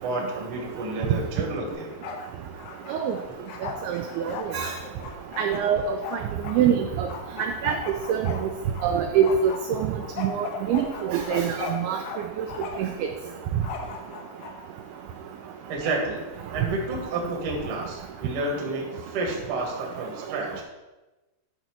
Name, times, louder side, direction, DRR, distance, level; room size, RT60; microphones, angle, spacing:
voice 1, 0.0-1.9 15.7-16.2 16.5-20.6, right 2 dB, 55° right, -1 dB, 1.6 m, -30 dB
Bark, 1.7-2.3 2.6-6.6 7.1-8.9 9.2-12.2 12.5-13.0 13.6-14.5, left 6 dB, 90° left, 3.3 m, -37 dB
voice 2, 5.4-5.8 6.5-7.1 7.6-7.7 8.1-8.3 8.8-9.8 10.2-12.0 12.8-12.9, right 8 dB, 85° right, 4 dB, 2.2 m, -24 dB
10.5 x 4.1 x 6.1 m, 1.1 s
omnidirectional pair, 5.2 m